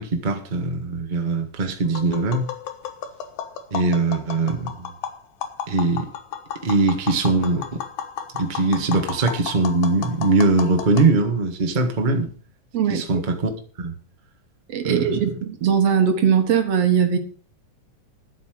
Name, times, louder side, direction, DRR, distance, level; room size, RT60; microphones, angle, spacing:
voice 1, 0.0-2.5 3.7-4.9 5.7-6.1 6.6-7.8 8.3-12.3 12.9-13.5 13.8-14.0 14.8-15.2, right 3 dB, 75° right, 0.4 m, -21 dB
Tap, 1.9-11.1, left 8 dB, 80° left, 3.0 m, -33 dB
voice 2, 14.7-17.2, right 7 dB, 55° right, 2.1 m, -20 dB
11.5 x 8.2 x 6.4 m
omnidirectional pair, 4.0 m